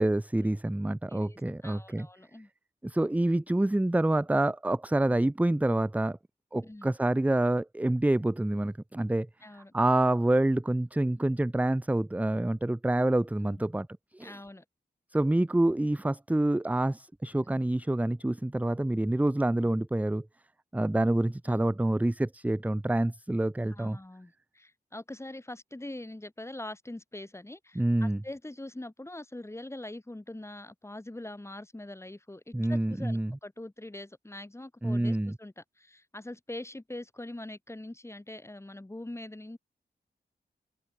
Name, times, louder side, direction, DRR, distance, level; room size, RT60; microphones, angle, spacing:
voice 1, 0.0-2.1 2.8-6.2 6.5-9.3 9.5-13.9 14.1-14.4 15.1-20.3 20.7-24.0 27.7-28.2 32.5-33.4 34.8-35.4, right 1 dB, 10° right, 0.7 m, -27 dB
voice 2, 1.6-2.5 6.6-6.9 9.4-9.7 13.5-13.6 14.2-14.6 17.5-17.6 19.6-19.7 21.5-21.7 23.7-39.6, left 1 dB, 15° left, 4.0 m, -43 dB
wide cardioid pair, 85°, 17 cm